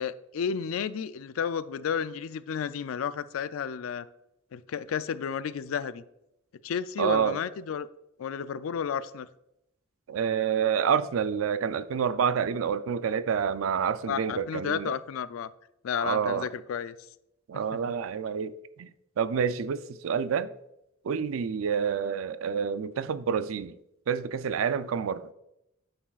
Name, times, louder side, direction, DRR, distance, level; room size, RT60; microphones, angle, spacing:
voice 1, 0.0-4.1 4.5-6.0 6.6-7.9 8.2-9.3 14.1-15.5 15.8-17.0 17.5-17.8, left 7 dB, 85° left, 0.4 m, -32 dB
voice 2, 7.0-7.4 10.1-14.9 16.0-16.5 17.5-18.9 19.2-20.5 21.0-23.7 24.1-25.3, right 7 dB, 85° right, 0.4 m, -28 dB
8.6 x 7.2 x 2.4 m
head